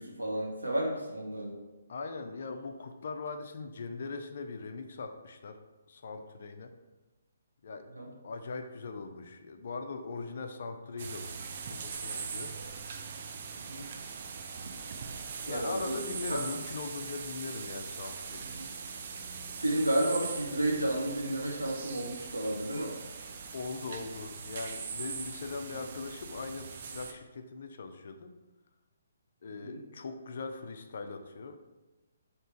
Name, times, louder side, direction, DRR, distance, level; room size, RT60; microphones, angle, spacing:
voice 1, 0.0-1.6 7.9-8.1 12.5-12.6 13.6-13.9 15.5-16.0 16.3-16.4 18.4-18.7 19.6-23.0 25.7-25.8 29.6-29.8, right 1 dB, 85° right, -1 dB, 0.9 m, -32 dB
voice 2, 1.9-5.6 5.9-6.7 7.6-7.9 8.2-11.3 11.6-12.8 15.4-18.5 23.5-28.3 29.4-31.6, left 4 dB, 55° left, 7 dB, 0.4 m, -40 dB
sound 1, 11.0-27.1, right 5 dB, 45° right, 0.4 m, -41 dB
3.3 x 2.8 x 4.4 m, 1.1 s
figure-of-eight pair, 135°, 0 cm